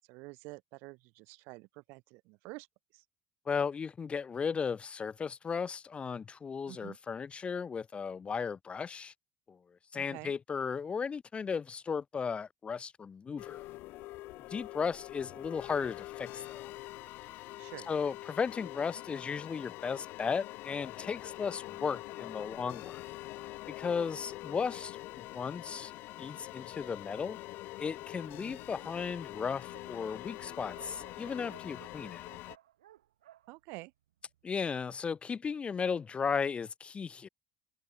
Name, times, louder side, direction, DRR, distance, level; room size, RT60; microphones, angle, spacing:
voice 1, 0.0-2.7 2.9-3.0 6.7-7.0 9.9-10.4 17.6-17.9 28.4-28.6 33.5-33.9, right 26 dB, 70° right, 1.4 m, -48 dB
voice 2, 3.5-9.1 9.5-9.6 9.9-13.6 14.5-16.7 17.9-23.0 23.7-25.9 26.2-27.4 27.8-32.2 34.4-37.3, left 6 dB, 30° left, 0.4 m, -35 dB
sound 1, 13.4-32.6, left 19 dB, 65° left, 1.8 m, -45 dB
Dog, 24.2-26.8 27.5-27.6 27.9-28.0 28.2-34.6, right 13 dB, 85° right, 4.5 m, -60 dB
hypercardioid pair, 65°, 4 cm